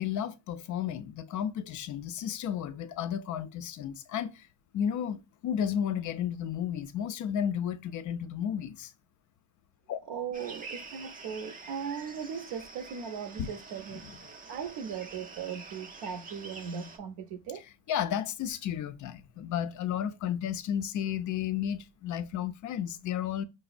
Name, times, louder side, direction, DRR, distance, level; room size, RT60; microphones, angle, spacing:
voice 1, 0.0-4.4 4.7-8.9 9.9-10.0 13.4-13.5 13.9-14.0 17.9-23.4, left 9 dB, 40° left, 0.4 m, -33 dB
voice 2, 10.1-14.1 14.5-17.6, right 7 dB, 55° right, 0.7 m, -38 dB
sound 1, 10.3-17.0, right 4 dB, 20° right, 0.4 m, -47 dB
5.0 x 2.0 x 2.3 m
cardioid pair, 110°, 47 cm